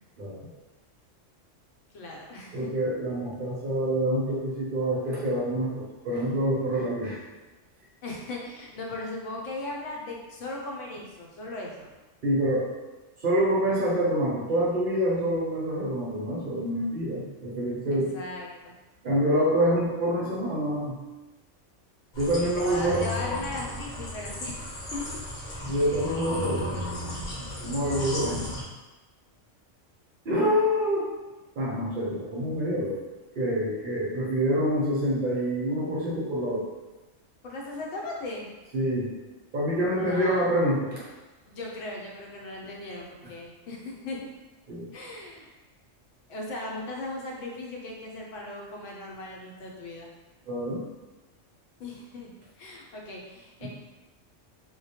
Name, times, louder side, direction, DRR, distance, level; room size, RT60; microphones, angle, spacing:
voice 1, 0.2-0.5 2.5-7.2 12.2-12.7 13.2-18.1 19.0-20.9 22.2-23.1 25.6-26.8 27.6-28.5 30.2-31.1 31.6-33.0 33.3-36.7 38.7-39.1 39.5-41.0 44.7-44.9 50.5-50.8 53.6-53.7, equal, 55° right, -6 dB, 0.6 m, -26 dB
voice 2, 1.9-2.7 8.0-11.9 17.9-18.7 22.3-25.2 27.4-27.7 37.4-38.5 39.9-40.5 41.5-44.2 44.9-45.5 46.3-50.1 51.8-53.7, left 2 dB, 75° left, -2 dB, 0.9 m, -38 dB
sound 1, 22.1-28.6, left 1 dB, 45° left, 0.8 m, -34 dB
2.2 x 2.1 x 2.7 m, 1.1 s
omnidirectional pair, 1.3 m